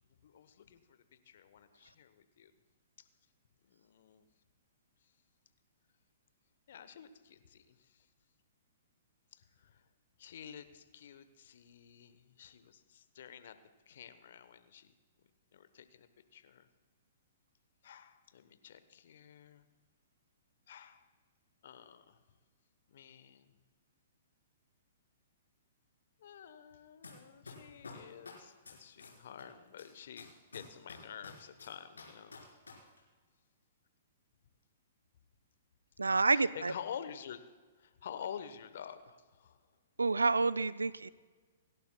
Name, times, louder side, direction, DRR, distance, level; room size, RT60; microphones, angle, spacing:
voice 1, 0.1-2.5 3.0-3.1 3.6-4.2 5.0-5.1 6.7-8.1 9.3-9.9 10.2-13.6 13.9-14.9 15.5-16.7 17.8-19.7 20.7-21.1 21.6-22.2 22.9-23.6 26.2-32.4 36.1-37.5 37.8-39.7, left 8 dB, 60° left, 11 dB, 1.0 m, -50 dB
sound 1, 27.0-27.1 27.5-29.4 29.8-32.7 33.0-33.1, left 5 dB, 85° left, 4.2 m, -49 dB
voice 2, 36.0-36.7 40.0-41.1, right 3 dB, 85° right, 17 dB, 0.4 m, -29 dB
29.0 x 11.5 x 2.3 m, 1.4 s
figure-of-eight pair, 115°, 0 cm